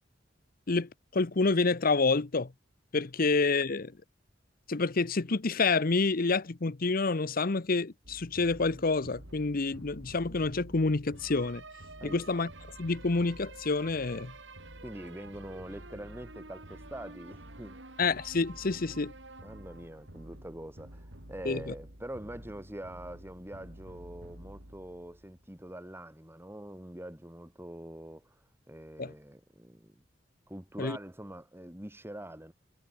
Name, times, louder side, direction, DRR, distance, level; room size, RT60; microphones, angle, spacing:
voice 1, 0.7-2.5 2.9-4.0 4.7-11.6 12.0-12.5 12.8-14.3 18.0-19.1 21.4-21.7 29.0-29.1 30.8-31.0, left 3 dB, 50° left, 0.9 m, -28 dB
sound 1, 8.0-25.6, right 1 dB, 75° right, 5.0 m, -49 dB
voice 2, 14.8-17.8 19.4-30.0 30.5-32.5, right 1 dB, 15° right, 2.9 m, -44 dB
head